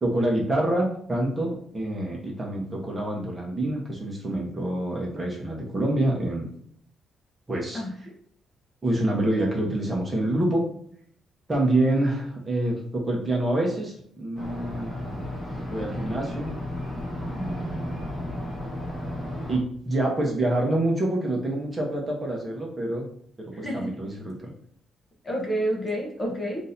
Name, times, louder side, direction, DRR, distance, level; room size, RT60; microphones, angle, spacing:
voice 1, 0.0-6.5 7.5-8.1 8.8-10.6 11.5-14.9 15.7-16.5 17.3-18.0 19.5-23.1 23.4-24.5, right 1 dB, 20° right, -1 dB, 1.0 m, -26 dB
sound 1, 14.4-19.6, left 1 dB, ahead, 1.4 m, -33 dB
voice 2, 23.5-23.9 25.2-26.6, equal, 15° left, -2 dB, 0.8 m, -29 dB
6.1 x 2.7 x 2.6 m, 0.65 s
cardioid pair, 160°, 0 cm